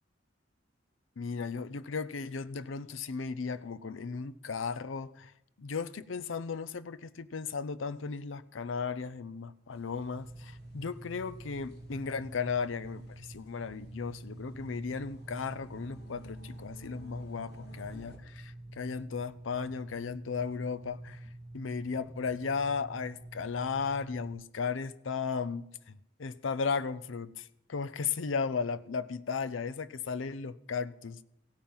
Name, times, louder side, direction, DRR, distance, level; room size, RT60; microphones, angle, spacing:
voice 1, 1.2-5.3 5.6-21.2 21.5-31.2, left 5 dB, 80° left, 0.6 m, -35 dB
sound 1, 9.7-18.2, equal, 60° left, 2.2 m, -56 dB
sound 2, 10.1-24.4, right 1 dB, 20° right, 0.4 m, -47 dB
16.0 x 8.8 x 5.5 m
head